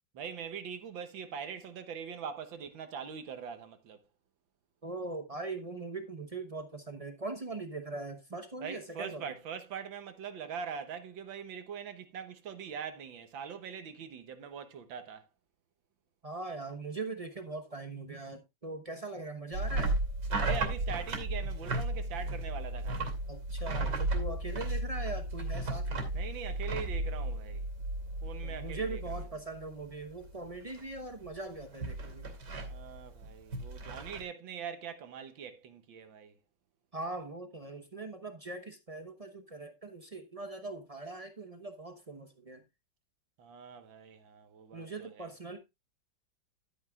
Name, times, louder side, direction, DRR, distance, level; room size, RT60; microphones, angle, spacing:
voice 1, 0.1-4.0 8.6-15.3 20.4-23.1 26.1-27.6 28.2-29.0 32.7-36.4 43.4-45.3, right 7 dB, 75° right, 1.8 m, -42 dB
voice 2, 4.8-9.2 16.2-20.0 23.3-26.1 28.4-32.3 36.9-42.6 44.7-45.6, right 3 dB, 35° right, 0.6 m, -41 dB
sound 1, 19.5-29.7 29.9-30.4 30.7-34.2, right 2 dB, 55° right, 3.2 m, -34 dB
12.5 x 8.9 x 2.4 m
omnidirectional pair, 2.2 m